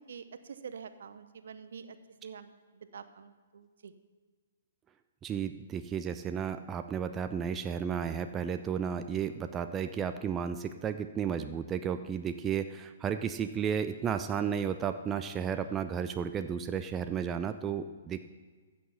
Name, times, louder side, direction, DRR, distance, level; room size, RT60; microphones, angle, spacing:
voice 1, 0.0-2.0 2.2-3.9, right 6 dB, 65° right, 11 dB, 0.7 m, -47 dB
voice 2, 5.2-18.2, right 7 dB, 20° right, 9 dB, 0.4 m, -33 dB
14.5 x 6.6 x 5.7 m, 1.5 s
figure-of-eight pair, 125°, 0 cm